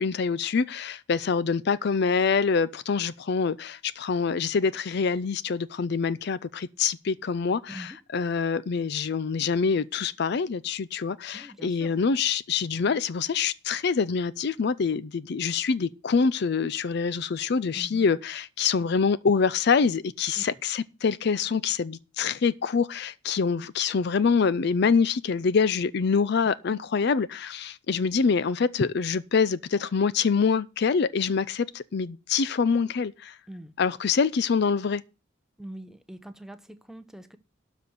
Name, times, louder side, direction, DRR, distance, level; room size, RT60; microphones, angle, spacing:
voice 1, 0.0-33.4 33.8-35.0, left 5 dB, 55° left, 0.4 m, -25 dB
voice 2, 11.3-11.9 17.8-18.0 20.4-20.6 33.5-33.7 35.6-37.4, right 1 dB, ahead, 0.7 m, -43 dB
12.5 x 4.2 x 7.9 m
head